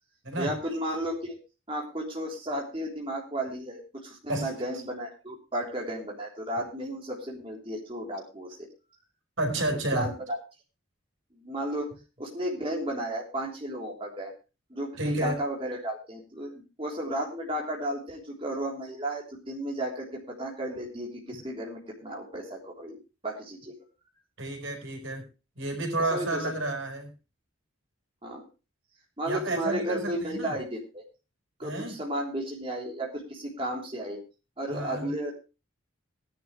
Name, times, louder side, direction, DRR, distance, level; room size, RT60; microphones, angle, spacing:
voice 1, 0.4-1.4 1.7-8.7 9.9-10.4 11.3-11.9 12.2-14.3 14.7-23.0 23.2-23.7 26.1-26.5 28.2-28.4 29.2-31.0 31.6-34.2 34.6-35.3, right 1 dB, 25° right, -2 dB, 3.5 m, -33 dB
voice 2, 9.4-10.1 15.0-15.3 24.4-25.2 25.6-27.1 29.2-30.5 31.6-32.0 34.7-35.1, right 1 dB, 70° right, 4 dB, 4.6 m, -30 dB
17.5 x 10.5 x 3.2 m, 0.30 s
head